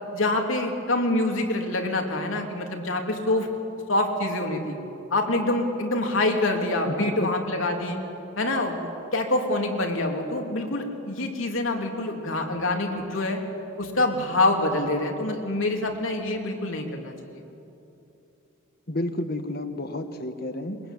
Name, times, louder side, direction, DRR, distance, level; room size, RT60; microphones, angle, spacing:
voice 1, 0.1-3.5 3.9-4.8 5.1-8.0 8.4-8.9 9.1-13.4 13.8-17.4, left 2 dB, 80° left, 2 dB, 3.1 m, -26 dB
voice 2, 6.9-7.3 18.9-20.8, left 1 dB, 50° left, 8 dB, 1.6 m, -30 dB
22.5 x 22.0 x 9.2 m, 2.9 s
head